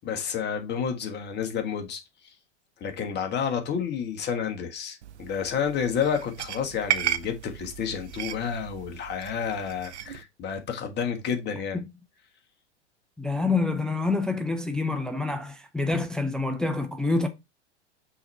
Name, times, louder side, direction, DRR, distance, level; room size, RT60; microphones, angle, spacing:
voice 1, 0.0-2.3 2.8-11.8, left 7 dB, 30° left, 1.5 m, -30 dB
sound 1, 5.0-10.2, right 10 dB, 70° right, 0.7 m, -34 dB
voice 2, 13.2-17.3, left 3 dB, ahead, 0.5 m, -27 dB
5.7 x 4.0 x 4.1 m
figure-of-eight pair, 95°, 35 cm